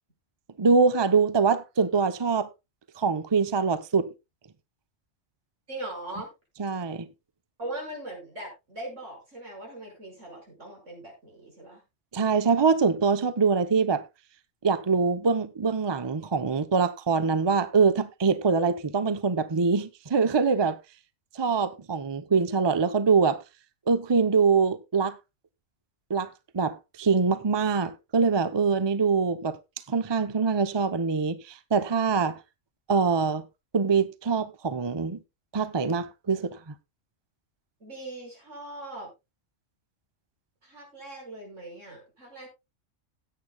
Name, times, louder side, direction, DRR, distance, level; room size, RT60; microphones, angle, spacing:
voice 1, 0.6-2.5 3.0-4.1 6.6-7.1 12.1-14.0 14.6-20.8 21.3-23.4 23.9-25.2 26.1-29.6 29.9-32.4 32.9-33.4 33.7-35.2 35.5-36.7, right 5 dB, 25° right, 0.6 m, -24 dB
voice 2, 5.7-6.3 7.6-11.8 37.8-39.1 40.6-42.5, right 1 dB, 70° right, 5.9 m, -40 dB
17.0 x 8.7 x 2.3 m
omnidirectional pair, 1.3 m